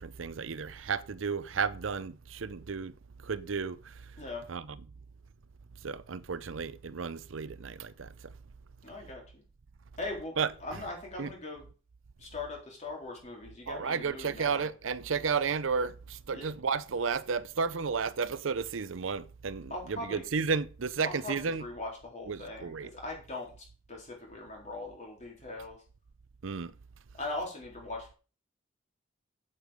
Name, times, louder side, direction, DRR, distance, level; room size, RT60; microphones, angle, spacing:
voice 1, 0.0-2.9 3.2-3.8 4.5-4.8 5.8-8.1 10.4-10.5 11.2-11.3 13.7-21.6 22.3-22.9 26.4-26.7, right 5 dB, 85° right, 0.6 m, -33 dB
voice 2, 8.8-9.4 10.0-10.3 10.6-11.6 12.2-14.6 16.3-16.5 19.7-20.3 21.0-25.8 27.2-28.1, left 2 dB, 40° left, 4.1 m, -40 dB
8.4 x 8.1 x 5.2 m
head